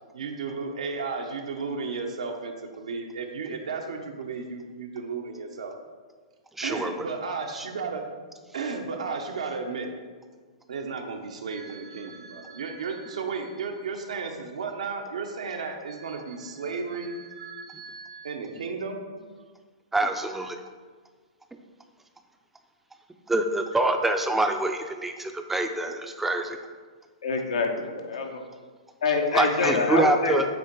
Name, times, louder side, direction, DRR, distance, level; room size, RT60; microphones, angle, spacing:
voice 1, 0.1-5.7 6.6-8.0 8.5-9.9 10.7-19.0, right 4 dB, 80° right, 4 dB, 0.8 m, -34 dB
voice 2, 6.6-6.9 7.5-7.7 19.9-20.6 23.3-26.6 29.3-30.5, right 2 dB, 5° right, 6 dB, 0.5 m, -25 dB
voice 3, 27.2-28.4 29.0-30.4, left 4 dB, 80° left, 2 dB, 1.1 m, -25 dB
7.8 x 2.9 x 4.6 m, 1.5 s
hypercardioid pair, 130°, 3 cm